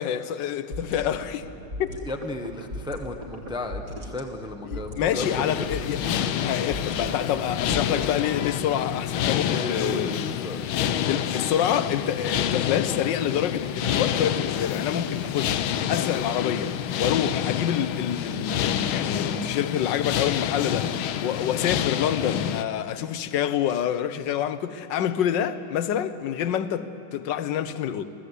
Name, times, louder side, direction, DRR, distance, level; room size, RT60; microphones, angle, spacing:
voice 1, 0.0-1.5 1.8-1.9 4.7-6.0 6.4-10.2 11.1-15.6 15.9-28.1, left 9 dB, 65° left, 1.5 m, -27 dB
sound 1, 0.7-8.7, equal, 45° right, 2.6 m, -38 dB
voice 2, 2.0-5.3 5.6-5.7 9.5-10.6 10.9-11.1, left 2 dB, 5° right, 1.0 m, -34 dB
sound 2, 5.2-22.6, left 10 dB, 90° left, 1.7 m, -28 dB
27.0 x 17.0 x 8.3 m
omnidirectional pair, 2.2 m